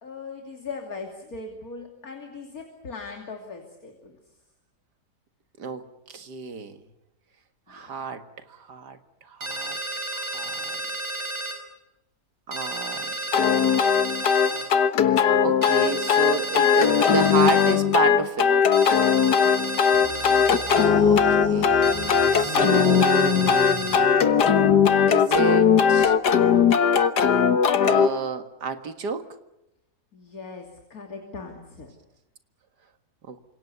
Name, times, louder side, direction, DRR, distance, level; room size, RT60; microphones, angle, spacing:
voice 1, 0.0-4.2 7.7-7.9 19.2-19.7 30.1-31.9, left 4 dB, 60° left, 3 dB, 3.2 m, -39 dB
voice 2, 5.6-6.8 7.7-9.8 10.1-10.8 12.5-13.2 14.4-14.7 15.1-18.5 21.1-21.8 22.3-23.8 25.1-26.2 27.8-29.3 33.3-33.4, right 5 dB, 80° right, 8 dB, 2.4 m, -31 dB
sound 1, 9.4-11.6 12.5-14.7 15.6-17.8 18.7-20.9 21.8-24.0, right 2 dB, 40° right, 5.6 m, -32 dB
sound 2, 13.3-28.1, left 7 dB, 80° left, 1.8 m, -19 dB
sound 3, 19.9-24.7, equal, 15° right, 4.2 m, -37 dB
28.5 x 26.0 x 7.0 m, 0.89 s
omnidirectional pair, 1.7 m